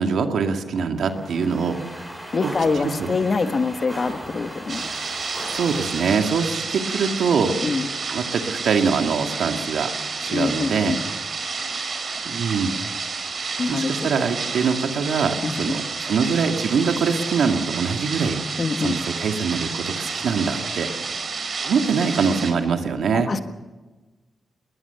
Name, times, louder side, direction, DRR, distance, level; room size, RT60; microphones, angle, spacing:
voice 1, 0.0-1.8 2.4-2.5 2.8-3.1 5.5-7.5 8.1-9.9 10.2-11.0 12.2-12.9 13.7-18.4 18.8-20.9 21.6-23.3, right 5 dB, 80° right, 5 dB, 2.1 m, -23 dB
sound 1, 1.0-6.7, equal, 5° right, 6.2 m, -38 dB
voice 2, 2.3-4.9 7.6-7.9 10.3-11.0 13.6-13.9 15.4-15.6 18.6-19.1 23.1-23.4, left 4 dB, 45° left, 8 dB, 1.4 m, -24 dB
sound 2, 4.7-22.5, right 4 dB, 50° right, 3.7 m, -30 dB
21.0 x 20.5 x 7.0 m, 1.2 s
cardioid pair, 105°, 0 cm